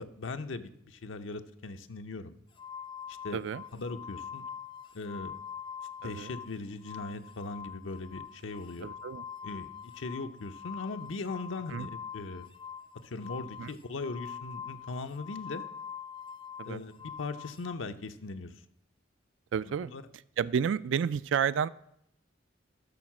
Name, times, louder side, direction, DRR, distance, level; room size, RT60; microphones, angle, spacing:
voice 1, 0.0-2.3 3.1-3.4 3.7-4.5 4.9-5.3 6.0-8.9 9.4-12.5 13.0-15.6 16.6-18.5 19.7-20.0, left 3 dB, 80° left, 8 dB, 0.7 m, -39 dB
sound 1, 2.5-6.5 6.8-17.7, left 8 dB, 25° left, 0.7 m, -44 dB
voice 2, 3.3-3.6 6.0-6.3 8.8-9.2 11.7-11.9 13.6-13.7 16.6-16.8 19.5-19.9 20.4-21.7, right 7 dB, 70° right, 18 dB, 0.3 m, -31 dB
12.0 x 6.4 x 6.0 m, 0.74 s
head